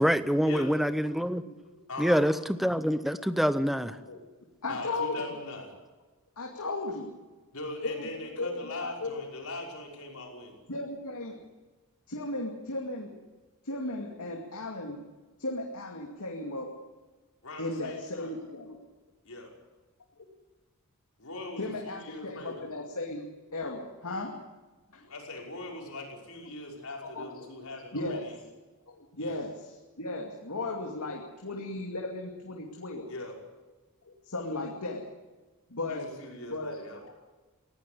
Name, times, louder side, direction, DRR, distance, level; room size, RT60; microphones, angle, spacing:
voice 1, 0.0-1.4 2.0-2.3 2.6-4.0, equal, ahead, 0.7 m, -25 dB
voice 2, 1.9-2.2 4.7-5.7 7.5-10.6 17.4-18.3 19.3-19.5 21.2-22.7 24.9-28.4 29.2-29.4 33.1-33.4 35.9-37.0, left 2 dB, 75° left, 5.6 m, -41 dB
voice 3, 2.8-3.3 3.8-4.2 4.6-5.2 6.4-7.1 7.8-8.1 8.4-9.1 10.7-11.4 12.1-13.1 13.6-15.0 15.4-16.7 17.6-18.8 21.6-23.2 23.5-24.4 24.9-25.0 27.0-27.4 27.9-28.3 28.9-33.1 34.1-35.1 35.7-36.1 36.5-36.8, left 2 dB, 90° left, 2.5 m, -36 dB
19.0 x 17.0 x 8.5 m
head